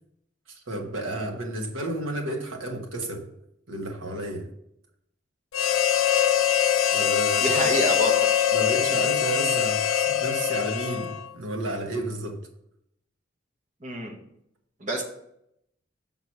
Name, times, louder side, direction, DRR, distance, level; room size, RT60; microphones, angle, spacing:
voice 1, 0.5-3.3 3.7-4.5 6.6-7.7 8.5-12.5, right 1 dB, 80° right, 2 dB, 1.3 m, -32 dB
Harmonica, 5.5-11.3, left 10 dB, 85° left, 0.5 m, -23 dB
voice 2, 7.4-8.5 13.8-14.1 14.8-15.0, right 1 dB, 35° right, 2 dB, 1.1 m, -28 dB
6.1 x 3.9 x 5.8 m, 0.77 s
head